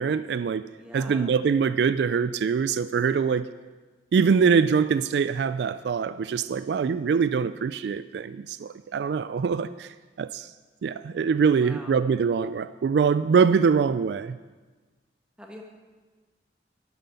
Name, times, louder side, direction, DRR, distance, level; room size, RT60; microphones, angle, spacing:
voice 1, 0.0-0.6 0.9-3.5 4.1-9.9 10.2-10.5 10.8-14.4, right 6 dB, 70° right, 14 dB, 0.3 m, -23 dB
voice 2, 0.8-1.4 11.6-12.1 15.4-15.6, equal, 5° right, 0 dB, 1.6 m, -44 dB
12.5 x 9.1 x 5.7 m, 1.3 s
head